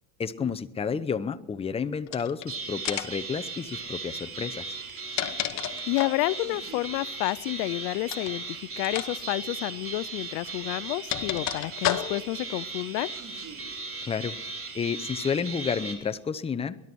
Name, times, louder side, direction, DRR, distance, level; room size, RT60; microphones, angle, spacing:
voice 1, 0.2-4.6 14.0-14.3 14.7-16.8, left 6 dB, 15° left, 11 dB, 0.7 m, -30 dB
sound 1, 2.1-2.5 2.8-3.3 4.7-6.2 8.0-8.3 8.8-9.1 9.4-9.5 10.4-12.4, left 12 dB, 45° left, 1.1 m, -31 dB
sound 2, 2.5-15.9, right 4 dB, 35° right, 3.5 m, -37 dB
voice 2, 5.9-13.1, left 21 dB, 70° left, 20 dB, 0.5 m, -30 dB
21.0 x 11.5 x 6.1 m, 1.0 s
supercardioid pair, 110°, 38 cm